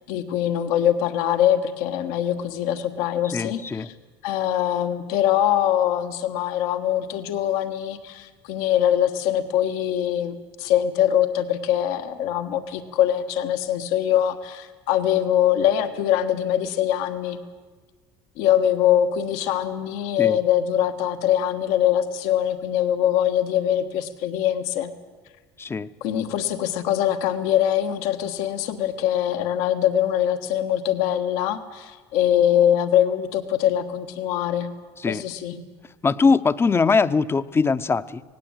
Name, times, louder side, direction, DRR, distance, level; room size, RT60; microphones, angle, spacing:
voice 1, 0.1-3.9 4.2-17.4 18.4-24.9 26.0-34.7 35.0-35.6, left 10 dB, 80° left, 8 dB, 1.4 m, -23 dB
voice 2, 3.2-3.9 20.2-20.4 25.6-25.9 35.0-35.2 36.0-38.2, left 4 dB, 20° left, 14 dB, 0.6 m, -21 dB
18.0 x 17.0 x 8.9 m, 1.4 s
supercardioid pair, 105°, 12 cm